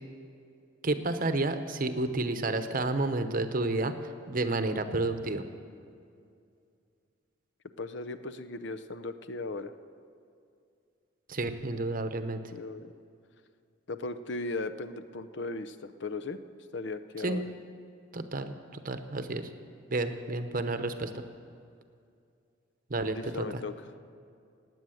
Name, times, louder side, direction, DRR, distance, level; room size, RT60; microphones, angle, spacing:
voice 1, 0.8-3.9 4.3-5.4 11.3-12.4 17.2-17.4 18.1-19.5 19.9-21.1 22.9-23.4, right 2 dB, 45° right, 9 dB, 0.8 m, -30 dB
voice 2, 7.8-9.7 12.5-12.9 13.9-16.4 16.7-17.4 23.1-23.7, left 3 dB, 60° left, 12 dB, 0.6 m, -37 dB
17.5 x 9.3 x 7.8 m, 2.4 s
head